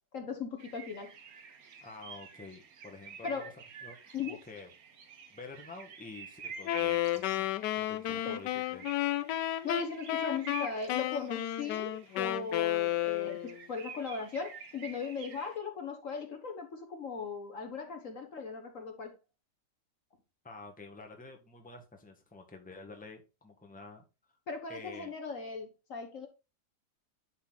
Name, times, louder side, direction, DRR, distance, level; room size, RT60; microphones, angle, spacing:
voice 1, 0.1-1.1 3.2-3.5 4.1-4.4 8.1-8.4 9.6-19.2 24.5-26.3, left 5 dB, 50° left, 1.5 m, -38 dB
sound 1, 0.6-15.6, right 6 dB, 60° right, 1.5 m, -49 dB
voice 2, 1.8-3.5 3.8-4.7 5.3-7.5 7.7-8.9 20.4-24.0 24.7-25.1, left 3 dB, 5° left, 1.3 m, -49 dB
Wind instrument woodwind instrument, 6.6-13.6, left 13 dB, 85° left, 1.2 m, -32 dB
10.5 x 4.2 x 4.0 m
omnidirectional pair, 1.8 m